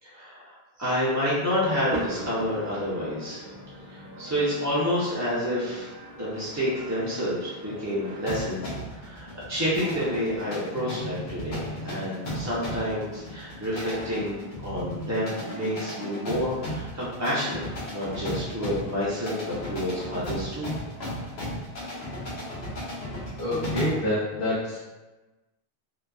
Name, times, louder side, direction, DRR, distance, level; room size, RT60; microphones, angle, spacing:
voice 1, 0.0-3.4 3.9-5.9 6.2-17.6 17.9-20.7, equal, 30° right, -9 dB, 0.3 m, -29 dB
sound 1, 1.6-8.5, right 1 dB, 70° right, 0.9 m, -40 dB
sound 2, 8.3-24.1, equal, 80° left, 1.0 m, -35 dB
voice 2, 23.4-24.8, left 1 dB, 60° left, -10 dB, 0.9 m, -27 dB
2.7 x 2.3 x 2.3 m, 1.1 s
omnidirectional pair, 1.1 m